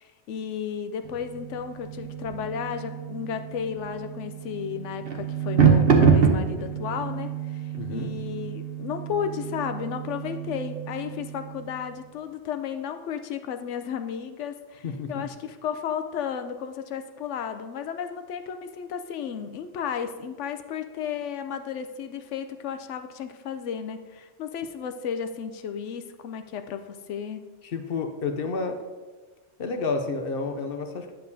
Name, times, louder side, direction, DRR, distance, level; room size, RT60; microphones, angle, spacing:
voice 1, 0.0-27.4, left 7 dB, 85° left, 9 dB, 0.9 m, -33 dB
sound 1, 1.0-11.8, right 6 dB, 55° right, 1.0 m, -26 dB
voice 2, 7.8-8.1 14.8-15.3 27.6-28.8 29.6-31.1, left 4 dB, 55° left, 6 dB, 0.8 m, -30 dB
10.0 x 6.7 x 2.7 m, 1.3 s
omnidirectional pair, 1.2 m